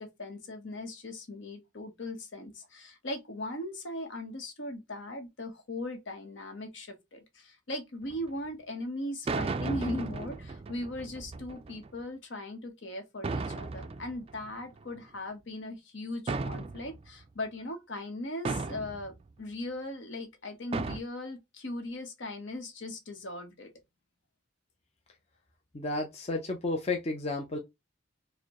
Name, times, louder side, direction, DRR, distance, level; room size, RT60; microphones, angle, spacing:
voice 1, 0.0-23.7, left 1 dB, 70° left, 1.0 m, -39 dB
sound 1, 8.0-8.3 9.3-11.9 13.2-15.0 16.3-17.2 18.4-19.1 20.7-21.0, right 3 dB, 30° right, 0.3 m, -35 dB
voice 2, 25.7-27.6, left 2 dB, 35° left, 0.6 m, -32 dB
4.9 x 2.2 x 2.9 m
head